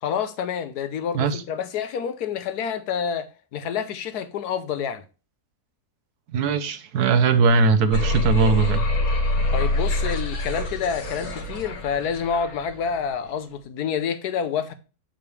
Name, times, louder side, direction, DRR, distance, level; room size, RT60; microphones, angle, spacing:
voice 1, 0.0-5.0 9.5-14.7, left 7 dB, 80° left, 1.4 m, -28 dB
voice 2, 6.3-8.9, right 4 dB, 80° right, 1.4 m, -20 dB
sound 1, 7.9-13.0, left 1 dB, 65° left, 1.8 m, -25 dB
6.9 x 5.8 x 3.3 m
omnidirectional pair, 1.7 m